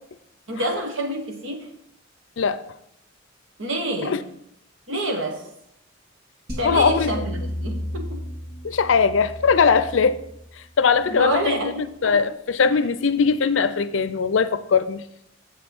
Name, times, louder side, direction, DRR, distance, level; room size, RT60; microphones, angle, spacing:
voice 1, 0.5-1.7 3.6-4.2 4.9-5.5 6.6-8.2 11.1-12.2, right 1 dB, 85° right, 1.5 m, -27 dB
sound 1, 6.5-11.7, equal, 55° right, 2.7 m, -34 dB
voice 2, 6.6-7.2 8.6-10.2 10.8-11.6 12.0-15.0, left 5 dB, 80° left, 0.5 m, -20 dB
7.7 x 7.3 x 4.5 m
head